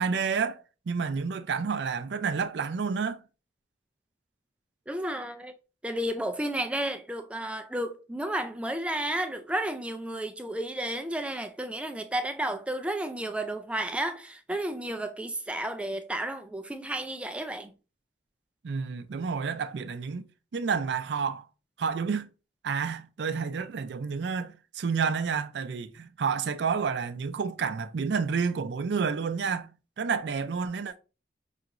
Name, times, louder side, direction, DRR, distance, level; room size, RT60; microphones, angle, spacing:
voice 1, 0.0-3.2 18.6-20.3 20.5-21.5 21.8-22.3 22.6-29.7 30.0-31.0, right 5 dB, 80° right, 0.4 m, -30 dB
voice 2, 4.9-5.5 5.8-17.7, right 1 dB, 5° right, 0.3 m, -32 dB
5.6 x 2.9 x 2.5 m
head